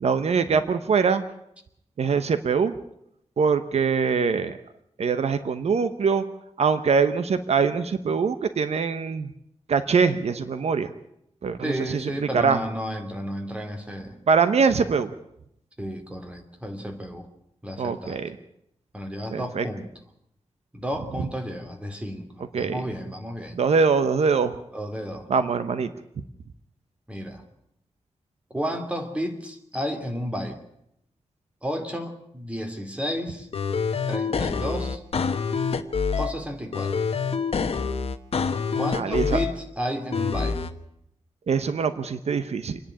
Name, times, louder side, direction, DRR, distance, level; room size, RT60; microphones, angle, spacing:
voice 1, 0.0-1.2 2.0-2.7 3.4-4.6 5.0-6.2 6.6-9.3 9.7-10.9 11.4-12.6 14.3-15.1 17.8-18.3 19.3-19.6 22.5-22.8 23.5-24.5 25.3-25.9 38.9-39.4 41.5-42.8, right 5 dB, 70° right, 11 dB, 1.0 m, -23 dB
voice 2, 11.6-14.2 15.8-17.3 17.6-18.2 18.9-19.9 20.7-23.6 24.7-25.3 27.1-27.4 28.5-30.6 31.6-33.5 34.1-35.0 36.2-36.9 38.8-40.6, equal, 10° right, 4 dB, 2.7 m, -32 dB
sound 1, 33.5-36.3 36.7-39.5 40.1-40.7, left 5 dB, 60° left, 1.2 m, -26 dB
27.0 x 10.5 x 9.8 m, 0.78 s
wide cardioid pair, 160°, 11 cm